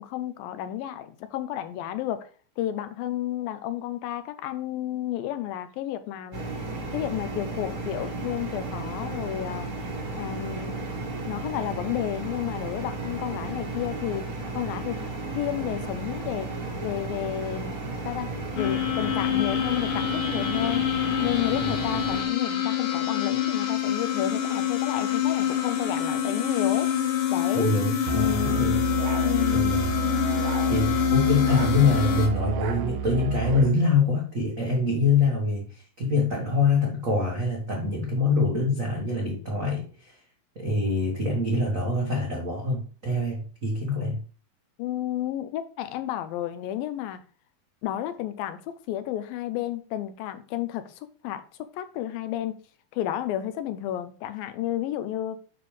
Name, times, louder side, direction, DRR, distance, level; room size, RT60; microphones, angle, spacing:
voice 1, 0.0-2.3 2.6-6.4 6.9-9.7 10.1-10.9 11.3-14.3 14.6-16.5 16.8-17.8 18.1-18.3 18.6-20.8 21.2-26.9 27.3-27.7 28.1-28.9 29.2-29.8 44.8-47.2 47.8-51.4 51.7-52.5 52.9-55.4, left 12 dB, 80° left, 2.3 m, -32 dB
sound 1, 6.3-22.2, right 2 dB, 45° right, 1.2 m, -34 dB
sound 2, 18.6-32.3, left 10 dB, 65° left, 2.7 m, -26 dB
voice 2, 27.5-28.8 29.5-29.9 30.7-40.1 40.5-44.2, left 3 dB, 75° right, 0.7 m, -25 dB
Musical instrument, 28.1-33.8, right 7 dB, 90° right, 2.8 m, -30 dB
8.8 x 5.1 x 3.2 m
omnidirectional pair, 4.3 m